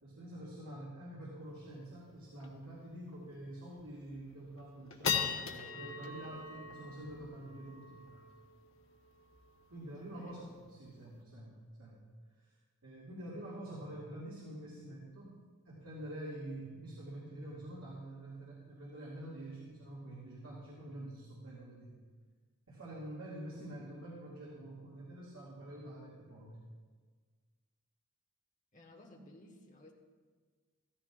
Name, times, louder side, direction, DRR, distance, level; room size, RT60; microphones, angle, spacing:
voice 1, 0.0-8.3 9.7-12.0 12.4-12.6 12.8-15.3 15.7-21.9 22.7-26.6, right 1 dB, 70° right, -6 dB, 2.3 m, -47 dB
sound 1, 1.5-1.6 1.9-2.0 2.4-2.6 3.1-3.2 3.8-4.1 4.6-11.2, left 6 dB, 60° left, 1.2 m, -41 dB
voice 2, 9.9-10.6 28.7-29.9, left 1 dB, 35° left, 1 dB, 1.4 m, -56 dB
15.0 x 14.0 x 2.5 m, 1.5 s
head